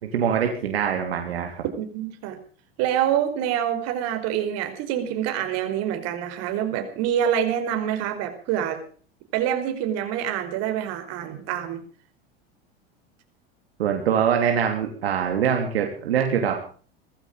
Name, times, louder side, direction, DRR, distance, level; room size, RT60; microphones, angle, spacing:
voice 1, 0.0-1.6 13.8-16.6, right 8 dB, 85° right, 3 dB, 3.3 m, -23 dB
voice 2, 1.8-2.4 2.8-8.8 9.3-11.8, right 10 dB, 55° right, 7 dB, 4.8 m, -26 dB
19.0 x 15.0 x 5.1 m, 0.42 s
hypercardioid pair, 95°, 30 cm